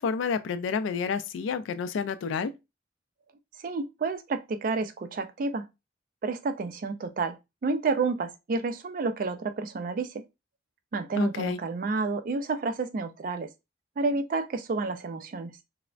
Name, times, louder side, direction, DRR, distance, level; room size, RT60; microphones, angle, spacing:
voice 1, 0.0-2.5 11.2-11.6, left 6 dB, 90° left, 0.3 m, -29 dB
voice 2, 3.6-5.7 6.2-7.4 7.6-10.1 10.9-13.5 14.0-15.5, right 3 dB, 45° right, 0.3 m, -30 dB
3.1 x 2.0 x 2.4 m
head